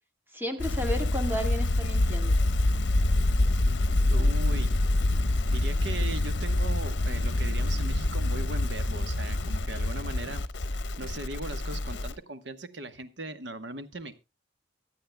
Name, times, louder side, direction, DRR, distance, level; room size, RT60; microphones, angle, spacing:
voice 1, 0.3-2.4, equal, 10° right, 1.6 m, -33 dB
sound 1, 0.6-12.1, left 2 dB, 75° left, 0.8 m, -26 dB
voice 2, 4.1-4.9 5.5-14.2, right 2 dB, 75° right, 1.1 m, -39 dB
23.5 x 8.6 x 2.2 m
head